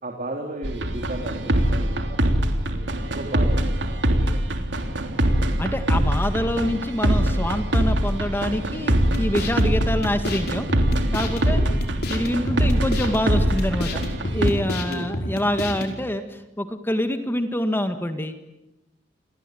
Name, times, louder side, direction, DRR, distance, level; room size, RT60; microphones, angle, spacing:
voice 1, 0.0-2.9 3.1-4.5 11.5-11.7 14.8-15.1, right 1 dB, 45° right, 2 dB, 3.4 m, -35 dB
sound 1, 0.6-14.5, right 1 dB, 80° right, 3.3 m, -23 dB
voice 2, 5.6-10.7 11.1-11.6 12.1-18.4, left 1 dB, 10° left, 8 dB, 1.9 m, -26 dB
sound 2, 8.9-15.9, left 1 dB, 60° left, 5.4 m, -30 dB
29.5 x 21.5 x 9.3 m, 0.95 s
head